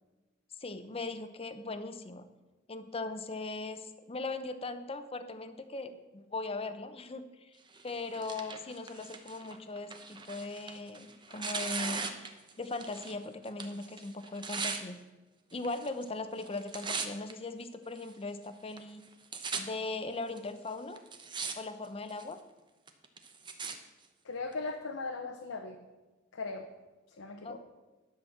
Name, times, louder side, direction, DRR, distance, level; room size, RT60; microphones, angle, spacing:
voice 1, 0.6-2.3 2.7-7.6 7.8-12.2 12.6-15.0 15.5-19.0 19.6-21.0 21.6-22.4 27.4-27.6, left 3 dB, 30° left, 10 dB, 0.7 m, -39 dB
Tearing, 7.7-13.2 13.5-14.8 15.6-16.1 16.4-17.3 18.0-18.1 18.8-18.9 19.0-19.6 20.4-20.5 21.0-21.5 21.8-22.3 22.9-23.7 24.5-24.6, right 5 dB, 25° right, 0.8 m, -39 dB
voice 2, 24.2-25.8 26.3-26.7 27.2-27.6, left 3 dB, 85° left, 3 dB, 0.9 m, -38 dB
11.0 x 6.0 x 7.2 m, 1.2 s
head